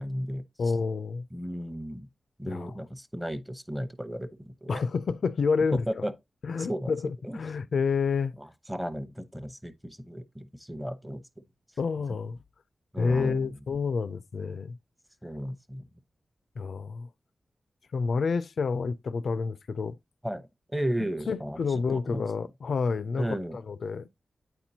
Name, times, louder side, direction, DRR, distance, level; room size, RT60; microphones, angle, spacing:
voice 1, 0.0-0.4 1.3-2.1 2.4-4.8 5.7-6.1 6.6-6.9 7.2-7.4 8.4-11.2 12.9-13.6 15.2-15.8 20.2-21.6 21.9-22.2 23.2-23.6, equal, 5° right, 0.7 m, -34 dB
voice 2, 0.6-1.3 2.5-2.8 4.7-5.8 6.4-8.3 11.8-12.4 13.0-14.8 16.6-17.1 17.9-20.0 21.3-23.3 23.5-24.1, left 5 dB, 75° left, 0.4 m, -29 dB
9.1 x 4.4 x 2.7 m
wide cardioid pair, 100°, 0 cm